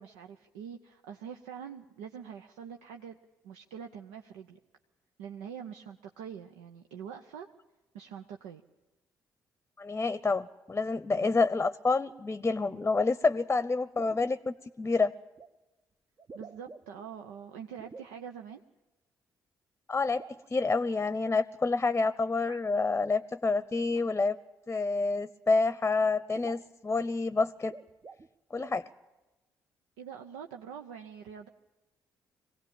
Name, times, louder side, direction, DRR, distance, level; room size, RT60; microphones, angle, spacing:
voice 1, 0.0-3.2 3.4-4.6 5.2-7.5 7.9-8.6 11.1-11.4 16.3-18.6 30.0-31.5, right 7 dB, 85° right, 4 dB, 0.7 m, -44 dB
voice 2, 9.8-15.1 19.9-20.2 20.5-24.4 24.7-27.7 28.5-28.8, left 3 dB, 25° left, 15 dB, 0.8 m, -28 dB
sound 1, 13.6-13.7 14.0-14.3 15.4-15.5 16.2-17.1 17.8-18.1 20.1-20.8 22.5-22.6 23.9-24.0 25.2-25.3 25.7-25.8 26.0-26.1 26.3-26.7 27.6-28.3 28.6-28.8, right 4 dB, 40° right, 0.9 m, -49 dB
23.0 x 17.0 x 8.9 m, 1.1 s
hypercardioid pair, 45°, 8 cm